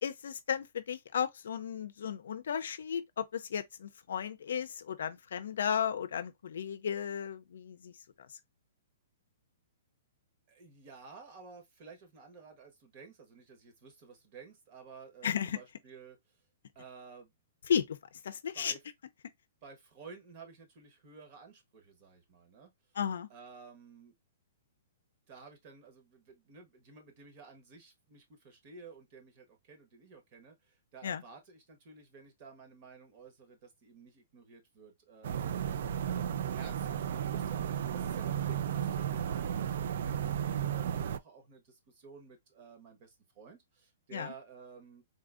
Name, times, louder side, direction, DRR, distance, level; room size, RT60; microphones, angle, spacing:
voice 1, 0.0-7.9 8.2-8.3 15.2-15.6 17.7-18.0 18.2-18.7 23.0-23.3 31.0-31.2 44.1-44.3, left 8 dB, 75° left, 0.5 m, -34 dB
voice 2, 10.5-16.2 16.7-17.3 18.5-18.8 19.6-22.7 23.3-24.1 25.3-45.0, right 5 dB, 35° right, 1.1 m, -53 dB
sound 1, 35.2-41.2, right 9 dB, 55° right, 0.3 m, -34 dB
3.8 x 2.6 x 2.4 m
hypercardioid pair, 165°, 0 cm